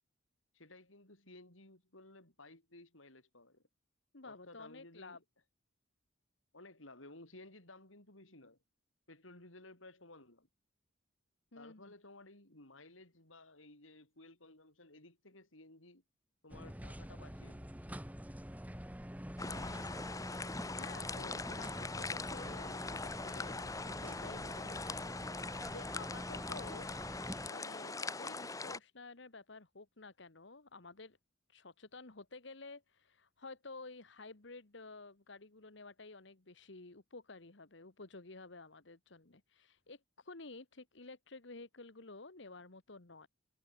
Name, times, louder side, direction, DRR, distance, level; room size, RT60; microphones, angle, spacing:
voice 1, 0.5-3.6 4.2-5.2 6.5-8.6 9.1-10.5 11.6-16.0 16.4-17.7, left 2 dB, 85° left, 7.0 m, -57 dB
voice 2, 4.1-5.2 11.5-11.9 19.4-20.2 20.5-26.9 27.4-31.2 31.5-43.3, left 3 dB, 65° left, 1.5 m, -52 dB
sound 1, 16.5-27.5, equal, 10° right, 2.2 m, -46 dB
sound 2, 19.4-28.8, left 3 dB, 15° left, 1.1 m, -42 dB
head